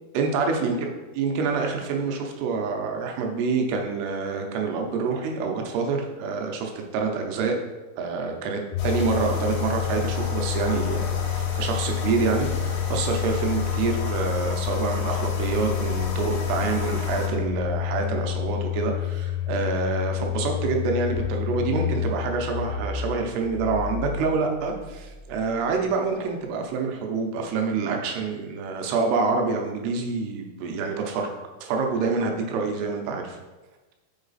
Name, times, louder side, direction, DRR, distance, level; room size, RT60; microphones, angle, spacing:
voice 1, 0.1-0.8 1.2-7.6 8.0-31.3 31.6-33.4, right 4 dB, 90° right, 2 dB, 2.8 m, -27 dB
Domestic sounds home sounds, 8.7-25.7, left 11 dB, 85° left, 2.5 m, -29 dB
sound 1, 8.8-17.3, left 4 dB, 70° left, 2.5 m, -32 dB
6.1 x 4.0 x 3.9 m, 1.2 s
omnidirectional pair, 4.5 m